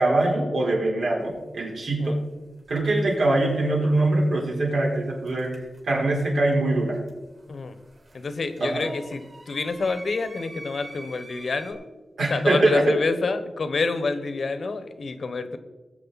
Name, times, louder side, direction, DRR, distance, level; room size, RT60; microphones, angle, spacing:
voice 1, 0.0-2.2 2.7-7.0 8.6-8.9 12.2-13.0, right 2 dB, 80° right, -3 dB, 4.1 m, -23 dB
sound 1, 1.2-1.4 2.6-3.2 5.3-6.2 6.5-11.7, right 2 dB, 45° right, 3.6 m, -46 dB
voice 2, 8.1-11.9 12.3-15.6, left 4 dB, 60° left, 10 dB, 1.1 m, -28 dB
19.5 x 7.7 x 4.1 m, 1.2 s
wide cardioid pair, 100°, 0 cm